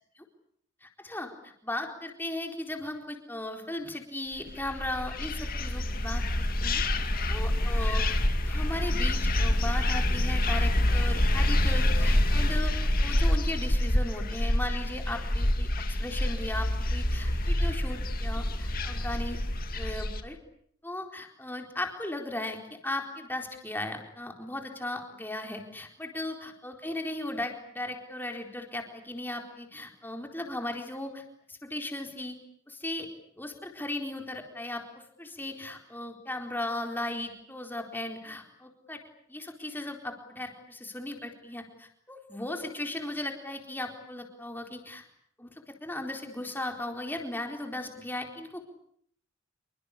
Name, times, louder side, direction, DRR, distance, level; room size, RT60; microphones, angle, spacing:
voice 1, 0.8-6.8 7.3-8.1 8.4-12.7 13.0-19.4 19.8-20.4 20.8-31.2 31.5-32.4 32.7-33.1 33.4-39.0 39.3-45.0 45.4-45.5 45.8-48.6, left 1 dB, 10° left, 3 dB, 4.3 m, -37 dB
sound 1, 4.5-20.2, left 1 dB, 45° left, 2.4 m, -27 dB
28.0 x 24.0 x 8.5 m, 0.67 s
head